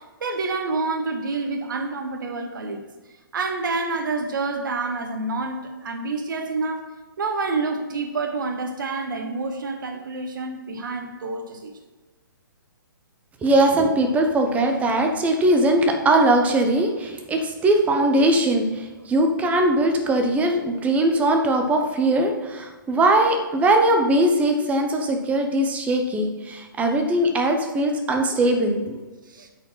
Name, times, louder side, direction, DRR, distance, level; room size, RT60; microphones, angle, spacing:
voice 1, 0.0-2.8 3.3-6.9 7.2-11.7 29.3-29.5, right 3 dB, 65° right, 4 dB, 1.0 m, -28 dB
voice 2, 13.4-29.0, right 1 dB, 10° right, 4 dB, 0.9 m, -20 dB
8.0 x 5.0 x 5.7 m, 1.2 s
hypercardioid pair, 135°, 12 cm